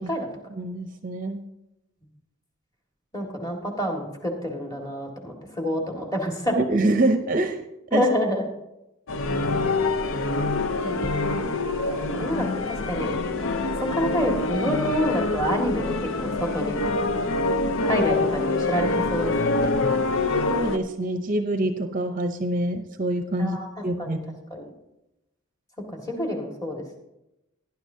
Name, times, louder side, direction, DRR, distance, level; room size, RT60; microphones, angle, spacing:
voice 1, 0.6-1.4 6.5-7.6 7.9-8.0 20.5-23.6 23.8-24.2, right 1 dB, 40° right, 7 dB, 0.6 m, -25 dB
voice 2, 3.1-6.6 7.9-8.4 10.8-11.3 11.8-13.1 13.8-16.8 17.8-19.7 23.4-23.7 24.0-24.2 24.5-24.6 25.9-27.0, equal, 15° left, 1 dB, 1.8 m, -28 dB
sound 1, 9.1-20.8, left 3 dB, 70° left, 0.7 m, -25 dB
17.5 x 10.5 x 2.8 m, 0.91 s
head